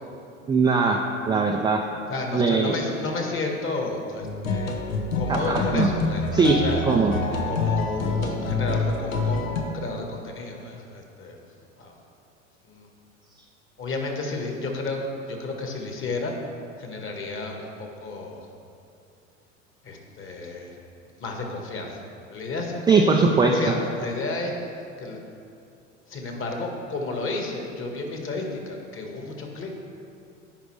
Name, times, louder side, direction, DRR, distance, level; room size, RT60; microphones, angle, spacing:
voice 1, 0.5-1.8 2.3-2.7 5.3-5.9 6.3-7.1 22.9-23.6, right 4 dB, 10° right, 0 dB, 0.4 m, -20 dB
voice 2, 2.1-4.8 5.1-6.8 7.5-11.4 11.8-11.9 12.7-12.9 13.8-16.3 16.8-18.5 19.8-20.7 21.2-22.0 22.3-23.1 23.4-24.5 25.0-25.2 26.1-29.7, left 3 dB, 30° left, 2 dB, 1.6 m, -32 dB
sound 1, 4.2-9.6, left 3 dB, 80° left, 1.0 m, -26 dB
15.0 x 5.1 x 3.2 m, 2.5 s
hypercardioid pair, 80°, 40 cm